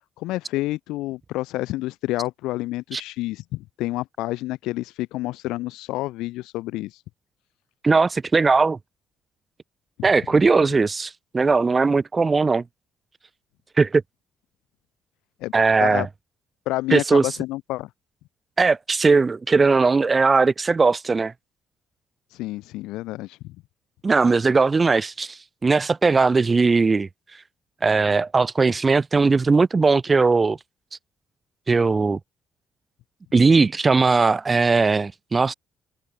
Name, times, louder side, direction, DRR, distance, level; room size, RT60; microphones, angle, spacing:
voice 1, 0.2-7.0 10.0-10.1 15.4-15.5 15.8-16.1 16.7-17.9 22.3-23.6, left 18 dB, 80° left, 2.1 m, -29 dB
voice 2, 7.8-8.8 10.0-12.6 13.8-14.0 15.5-16.1 16.9-17.3 18.6-21.3 24.0-27.1 27.8-30.6 31.7-32.2 33.3-35.5, right 4 dB, 30° right, 0.7 m, -19 dB
hypercardioid pair, 55°, 0 cm